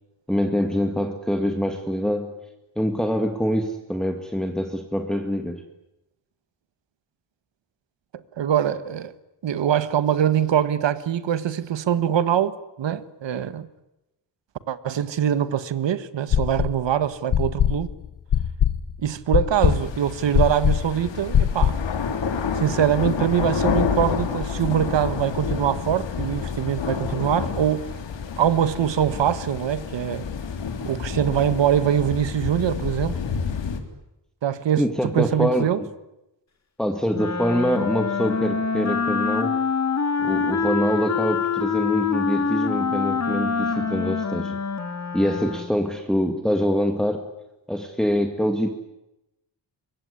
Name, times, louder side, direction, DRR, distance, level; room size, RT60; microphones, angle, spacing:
voice 1, 0.3-2.3 2.8-5.6 34.8-35.9 36.8-39.6 40.2-44.6 45.1-47.3 47.7-48.7, equal, ahead, 1.9 m, -24 dB
voice 2, 8.4-9.1 9.4-13.7 14.7-17.9 19.0-21.8 22.5-27.8 28.4-30.2 30.9-33.2 34.4-35.8, right 9 dB, 80° right, 1.6 m, -23 dB
sound 1, 16.3-16.9 17.3-21.9, left 9 dB, 60° left, 1.2 m, -21 dB
sound 2, 19.6-33.8, left 6 dB, 80° left, 3.7 m, -29 dB
Wind instrument woodwind instrument, 37.1-45.8, left 5 dB, 35° left, 2.4 m, -25 dB
25.0 x 23.0 x 9.8 m
wide cardioid pair, 150°, 44 cm